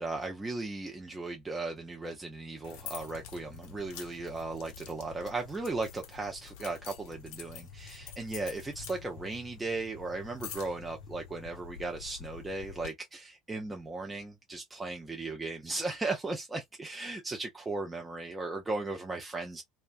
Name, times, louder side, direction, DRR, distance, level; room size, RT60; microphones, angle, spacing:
voice 1, 0.0-19.6, right 3 dB, 15° right, 0.5 m, -36 dB
sound 1, 2.6-12.9, left 7 dB, 60° left, 0.5 m, -47 dB
2.3 x 2.2 x 2.5 m
figure-of-eight pair, 65°, 0 cm